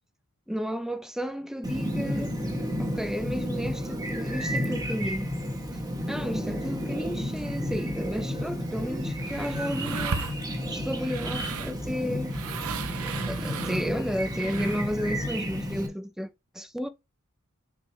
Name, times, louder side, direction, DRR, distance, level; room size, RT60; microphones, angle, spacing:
voice 1, 0.5-2.4 2.8-5.3 6.1-10.3 10.7-12.3 13.3-16.3 16.5-16.9, equal, ahead, 0.5 m, -32 dB
Chirp tweet, 1.6-15.9, equal, 20° right, 1.2 m, -32 dB
sound 1, 8.7-15.0, right 5 dB, 85° right, 0.7 m, -37 dB
5.9 x 5.3 x 3.2 m
head